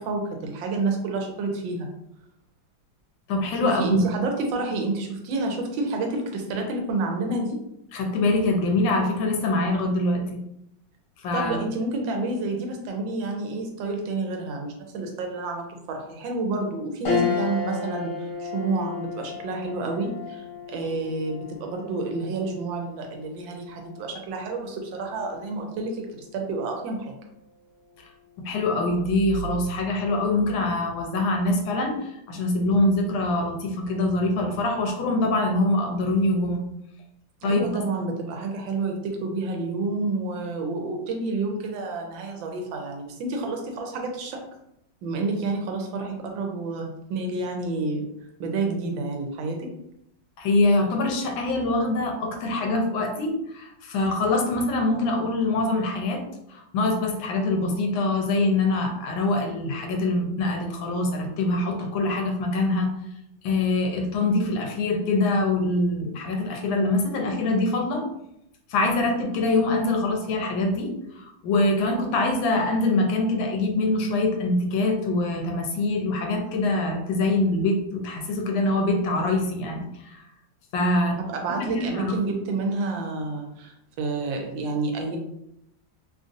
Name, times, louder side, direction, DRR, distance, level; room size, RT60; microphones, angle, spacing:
voice 1, 0.0-1.9 3.6-7.6 11.3-18.1 18.4-26.1 26.3-27.2 37.4-44.4 45.0-48.0 48.4-49.7 81.2-85.2, right 3 dB, 80° right, 3 dB, 1.3 m, -29 dB
voice 2, 3.3-4.0 7.9-10.4 11.2-11.6 28.4-32.0 32.3-36.6 37.4-37.7 50.4-56.2 56.5-62.9 63.4-68.1 68.7-79.9 80.7-81.2 81.6-82.1, left 2 dB, 85° left, 3 dB, 1.4 m, -24 dB
sound 1, 17.0-26.6 27.1-27.2 28.5-29.0, left 5 dB, 70° left, 1.3 m, -34 dB
3.4 x 2.5 x 2.5 m, 0.79 s
omnidirectional pair, 2.1 m